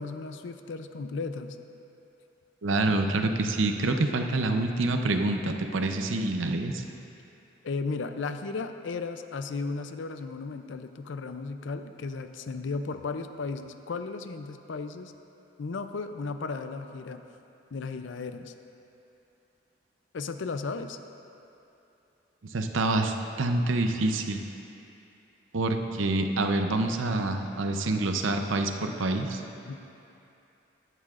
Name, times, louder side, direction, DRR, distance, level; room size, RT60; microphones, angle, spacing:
voice 1, 0.0-1.6 7.6-15.1 15.6-17.2 17.7-18.5 20.1-21.0 29.7-29.8, left 4 dB, 70° left, 9 dB, 0.5 m, -35 dB
voice 2, 2.6-6.8 22.5-24.4 25.5-29.4, right 2 dB, 85° right, 5 dB, 0.7 m, -27 dB
14.0 x 11.0 x 2.5 m, 2.8 s
head